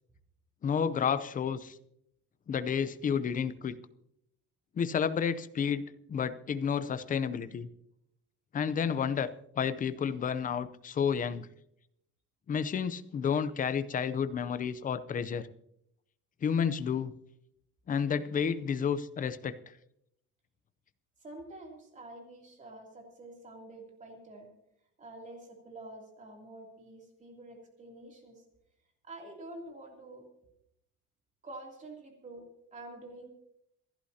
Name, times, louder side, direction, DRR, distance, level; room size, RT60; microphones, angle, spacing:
voice 1, 0.6-1.8 2.5-3.7 4.8-7.7 8.5-9.3 9.6-11.5 12.5-15.5 16.4-17.1 17.9-19.5, left 7 dB, 30° left, 13 dB, 0.6 m, -31 dB
voice 2, 21.2-24.5 25.0-28.4 29.0-30.2 31.4-33.3, right 2 dB, 25° right, 1 dB, 2.9 m, -48 dB
27.5 x 11.5 x 2.8 m, 0.77 s
cardioid pair, 170°, 30 cm